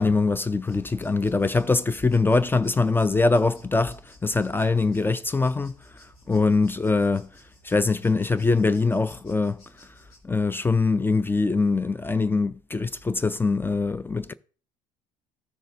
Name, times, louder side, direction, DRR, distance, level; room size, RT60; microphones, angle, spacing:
voice 1, 0.0-5.8 6.3-7.3 7.6-9.6 10.2-14.3, left 3 dB, 10° left, 0.4 m, -23 dB
sound 1, 0.6-10.2, left 1 dB, 70° left, 2.8 m, -54 dB
15.0 x 6.4 x 2.5 m
figure-of-eight pair, 55°, 18 cm